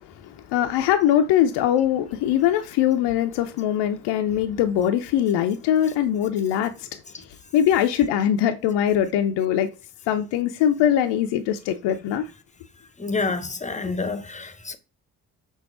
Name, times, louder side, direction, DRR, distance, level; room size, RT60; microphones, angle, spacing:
voice 1, 0.2-6.9 7.5-9.7 10.1-12.3, left 10 dB, 65° left, 0.6 m, -22 dB
voice 2, 13.0-14.8, left 3 dB, 15° left, 0.8 m, -28 dB
6.1 x 2.3 x 3.7 m
hypercardioid pair, 40°, 45 cm